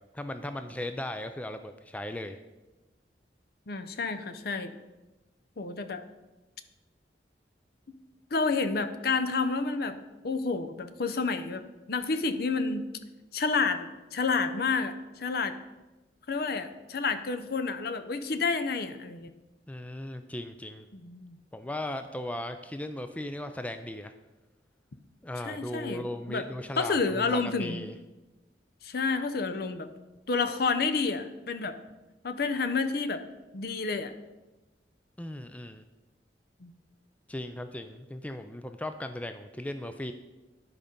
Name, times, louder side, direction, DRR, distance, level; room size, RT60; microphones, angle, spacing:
voice 1, 0.1-2.4 19.7-20.9 21.5-24.1 25.2-28.0 35.2-35.8 37.3-40.1, left 1 dB, 10° left, 8 dB, 0.3 m, -37 dB
voice 2, 3.7-4.7 5.6-6.0 8.3-10.0 10.2-12.9 13.3-15.5 16.3-19.3 20.9-21.4 25.5-26.5 26.8-27.8 28.8-29.9 30.3-31.8 32.2-33.2 33.5-34.1 36.6-36.7, left 4 dB, 60° left, 9 dB, 0.6 m, -29 dB
11.0 x 5.0 x 5.3 m, 1.1 s
head